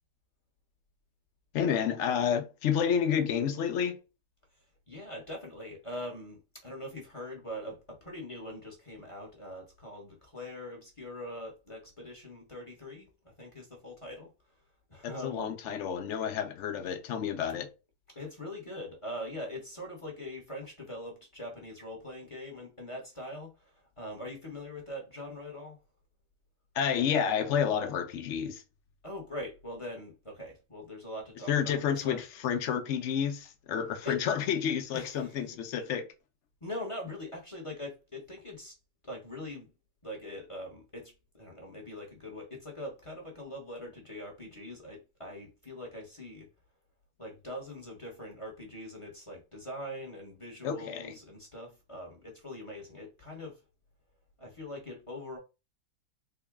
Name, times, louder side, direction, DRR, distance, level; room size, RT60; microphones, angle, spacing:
voice 1, 1.5-4.0 15.0-17.7 26.7-28.6 31.5-36.1 50.6-51.1, left 8 dB, 75° left, 0.6 m, -30 dB
voice 2, 4.9-14.3 14.9-15.5 18.1-25.8 29.0-32.2 34.0-34.2 34.9-35.4 36.6-38.8 39.0-39.7 40.0-46.5 47.2-53.6 54.4-55.4, left 1 dB, 25° left, 0.7 m, -42 dB
3.8 x 2.1 x 3.5 m
omnidirectional pair, 1.9 m